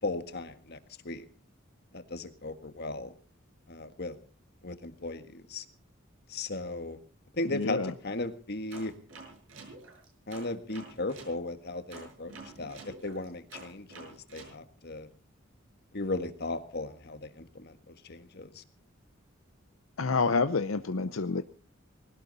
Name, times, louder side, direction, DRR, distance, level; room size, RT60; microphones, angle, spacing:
voice 1, 0.0-0.8 1.0-1.2 1.9-3.1 3.7-4.2 4.6-5.6 6.3-7.0 7.3-8.9 10.3-15.1 15.9-18.6, left 2 dB, 55° left, 9 dB, 1.7 m, -36 dB
voice 2, 7.5-7.9 20.0-21.4, left 4 dB, 75° left, 10 dB, 0.7 m, -28 dB
sound 1, 8.7-11.3 11.9-14.5, right 3 dB, 70° right, 7.4 m, -48 dB
20.0 x 17.5 x 4.1 m, 0.39 s
head